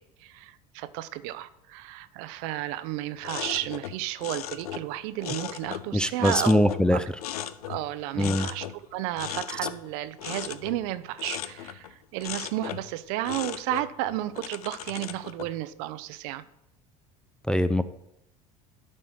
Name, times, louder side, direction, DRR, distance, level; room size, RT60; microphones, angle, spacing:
voice 1, 0.0-7.0 7.7-16.4, right 15 dB, 60° right, 14 dB, 0.6 m, -33 dB
sound 1, 3.2-5.9 6.2-7.9 8.2-8.8 9.1-11.9 12.2-12.9 13.2-15.5, left 11 dB, 80° left, 0.5 m, -37 dB
voice 2, 5.9-7.0 8.2-8.5 17.5-17.8, left 1 dB, 5° left, 12 dB, 0.5 m, -22 dB
12.0 x 4.3 x 4.8 m, 0.80 s
hypercardioid pair, 70°, 19 cm